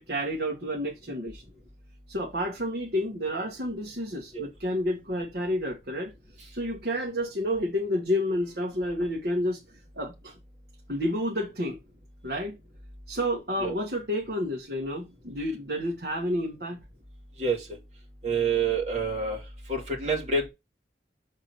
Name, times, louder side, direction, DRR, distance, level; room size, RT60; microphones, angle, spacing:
voice 1, 0.0-1.4 2.1-6.1 6.5-9.6 9.9-10.3 10.9-11.8 12.2-12.6 13.1-16.8, equal, 60° right, 1.3 m, -30 dB
voice 2, 18.2-19.4 19.7-20.5, right 4 dB, 40° right, 2.4 m, -27 dB
6.5 x 3.7 x 5.3 m
head